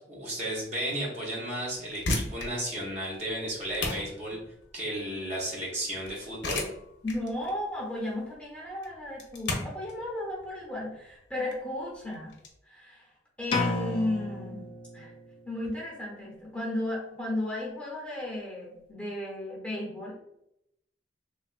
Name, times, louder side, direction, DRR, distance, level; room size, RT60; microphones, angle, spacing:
voice 1, 0.1-4.4 4.7-6.7, right 1 dB, 40° right, -3 dB, 0.7 m, -33 dB
sound 1, 1.8-12.5, left 2 dB, 75° left, 0.7 m, -37 dB
voice 2, 7.0-12.3 12.6-13.1 13.4-14.7 14.9-15.1 15.4-20.2, left 1 dB, 5° left, -4 dB, 0.7 m, -34 dB
sound 2, 13.5-15.4, left 3 dB, 30° left, 0.3 m, -32 dB
3.3 x 2.3 x 2.3 m, 0.79 s
head